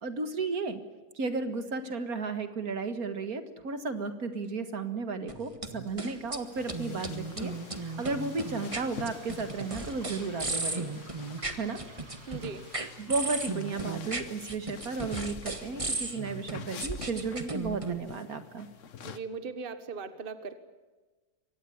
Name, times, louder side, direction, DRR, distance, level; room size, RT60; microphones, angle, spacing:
voice 1, 0.0-0.8 1.1-11.0 11.6-11.8 13.0-18.7, right 4 dB, 65° right, 10 dB, 2.1 m, -34 dB
sound 1, 5.3-6.4 6.7-18.0, right 3 dB, 20° right, 1.7 m, -35 dB
Frying (food), 5.4-13.3, right 1 dB, 80° right, 6.3 m, -53 dB
sound 2, 6.5-19.2, left 7 dB, 55° left, 1.3 m, -48 dB
voice 2, 12.3-12.7 19.0-20.6, right 5 dB, 35° right, 11 dB, 1.6 m, -39 dB
24.0 x 18.5 x 10.0 m, 1.3 s
omnidirectional pair, 1.7 m